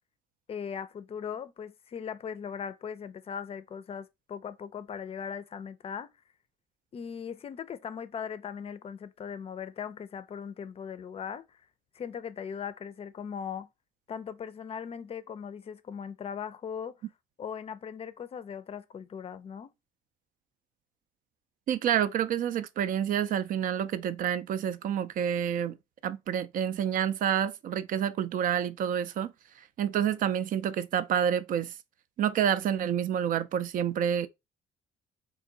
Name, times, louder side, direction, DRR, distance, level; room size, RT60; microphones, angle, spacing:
voice 1, 0.5-6.1 6.9-11.6 11.9-13.7 14.1-17.0 17.4-19.7, left 7 dB, 35° left, 0.5 m, -39 dB
voice 2, 21.7-25.8 26.0-29.3 29.8-31.7 32.2-34.3, right 9 dB, 55° right, 0.4 m, -28 dB
3.7 x 2.6 x 3.8 m
cardioid pair, 110°, 17 cm